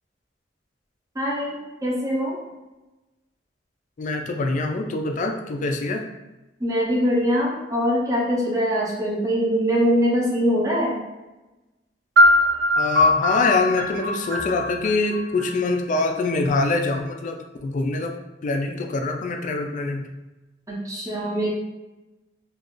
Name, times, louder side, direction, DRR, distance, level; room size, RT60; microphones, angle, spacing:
voice 1, 1.1-2.4 6.6-11.0 20.7-21.5, equal, 15° right, -5 dB, 0.6 m, -23 dB
voice 2, 4.0-6.1 12.7-18.1 18.4-20.1, left 3 dB, 40° left, 4 dB, 0.3 m, -24 dB
sound 1, 12.2-16.0, left 1 dB, 85° right, 0.7 m, -20 dB
2.4 x 2.3 x 3.6 m, 1.1 s
head